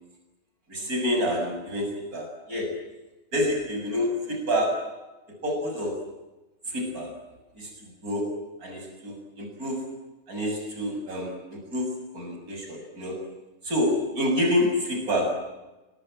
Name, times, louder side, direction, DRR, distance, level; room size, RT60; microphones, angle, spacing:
voice 1, 0.7-2.8 3.3-5.0 5.4-6.1 6.7-7.2 7.6-7.7 8.0-9.9 10.3-13.2 13.6-15.3, left 1 dB, 80° right, 2 dB, 7.4 m, -28 dB
29.5 x 20.0 x 9.0 m, 1.1 s
omnidirectional pair, 1.5 m